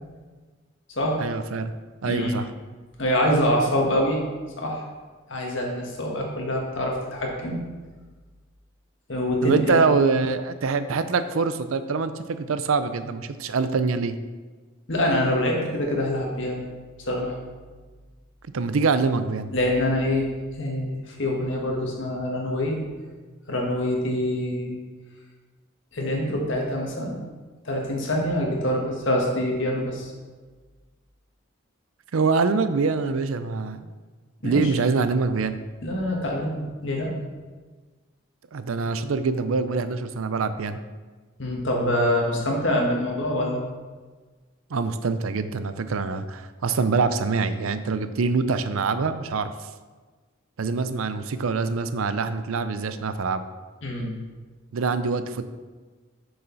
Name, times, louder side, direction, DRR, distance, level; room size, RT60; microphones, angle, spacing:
voice 1, 1.2-1.7 2.0-2.5 9.4-14.2 18.5-19.5 32.1-33.9 34.4-35.6 38.5-40.8 44.7-49.5 50.6-53.4 54.7-55.4, right 4 dB, 90° right, 11 dB, 0.5 m, -24 dB
voice 2, 2.0-2.4 3.0-4.2 4.6-4.8 5.3-7.6 9.1-9.9 14.9-16.6 17.0-17.3 19.5-22.8 23.5-24.8 25.9-27.2 27.6-30.1 34.4-34.7 35.8-37.1 41.4-43.6 53.8-54.1, left 1 dB, 65° left, -1 dB, 1.6 m, -25 dB
7.1 x 6.4 x 4.0 m, 1.4 s
head